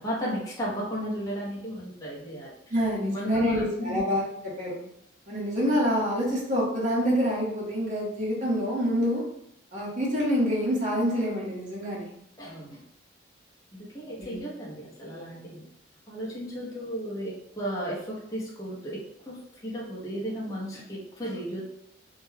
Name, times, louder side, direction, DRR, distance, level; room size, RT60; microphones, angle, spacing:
voice 1, 0.0-2.5 3.0-4.0 12.4-12.8 13.7-15.6 16.1-19.0 19.3-19.4 19.6-21.6, equal, 20° left, -7 dB, 0.6 m, -34 dB
voice 2, 2.7-4.8 5.3-9.2 9.7-12.2 14.2-14.4, equal, 40° right, -6 dB, 0.8 m, -27 dB
2.2 x 2.1 x 3.1 m, 0.75 s
head